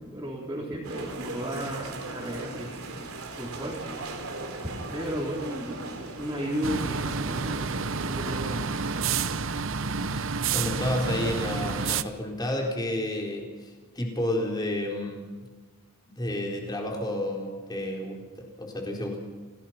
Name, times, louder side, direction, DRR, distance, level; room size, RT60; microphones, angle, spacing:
voice 1, 0.0-3.1 3.4-4.1 4.9-7.7 8.0-8.8, equal, 15° right, -6 dB, 4.0 m, -34 dB
sound 1, 0.8-9.4, right 2 dB, 75° right, 3.3 m, -38 dB
sound 2, 6.6-12.0, right 5 dB, 60° right, 0.8 m, -29 dB
voice 2, 10.5-15.3 16.1-19.2, left 1 dB, 20° left, 1 dB, 4.0 m, -31 dB
29.0 x 17.0 x 6.0 m, 1.4 s
head